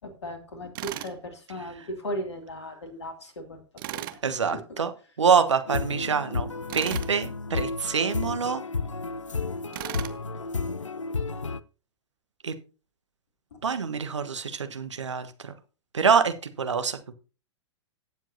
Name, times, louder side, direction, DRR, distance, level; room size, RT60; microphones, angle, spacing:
voice 1, 0.0-3.6 3.9-4.2 4.5-4.8 13.5-13.6, equal, 65° left, 4 dB, 2.4 m, -37 dB
Tools, 0.7-1.2 3.8-4.2 6.7-7.1 9.7-10.2, right 14 dB, 45° right, 0.9 m, -35 dB
voice 2, 4.2-4.9 5.2-6.5 6.7-8.6 12.4-12.5 13.6-15.5 15.9-17.1, right 6 dB, 75° right, 10 dB, 1.2 m, -25 dB
sound 1, 5.7-11.6, left 4 dB, 85° left, 0.5 m, -32 dB
17.5 x 7.5 x 2.7 m, 0.35 s
figure-of-eight pair, 105°, 16 cm